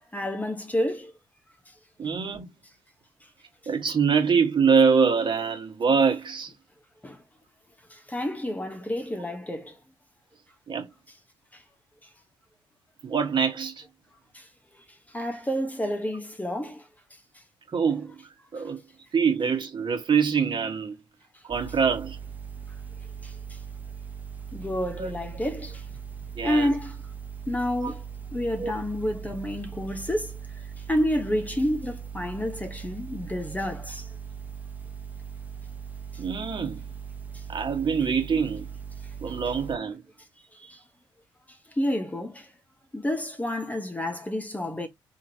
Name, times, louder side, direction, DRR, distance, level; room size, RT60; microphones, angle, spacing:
voice 1, 0.1-1.1 7.0-7.2 7.9-9.8 11.5-11.6 14.3-14.5 15.1-16.9 23.2-23.6 24.5-25.8 26.4-27.0 27.5-28.0 28.3-30.4 30.9-34.1 37.3-37.4 40.5-40.8 41.7-42.5 42.9-44.9, left 1 dB, 15° left, 1.2 m, -29 dB
voice 2, 2.0-2.5 3.7-6.5 10.7-10.9 13.0-13.8 17.7-18.2 18.5-18.8 19.1-21.0 21.4-22.2 25.0-25.1 26.4-26.7 27.8-27.9 28.6-28.8 36.2-36.8 37.5-38.7 39.2-40.0, right 6 dB, 50° right, 1.7 m, -24 dB
sound 1, 21.5-39.8, right 7 dB, 15° right, 1.0 m, -39 dB
3.7 x 2.8 x 2.9 m
supercardioid pair, 55°, 10 cm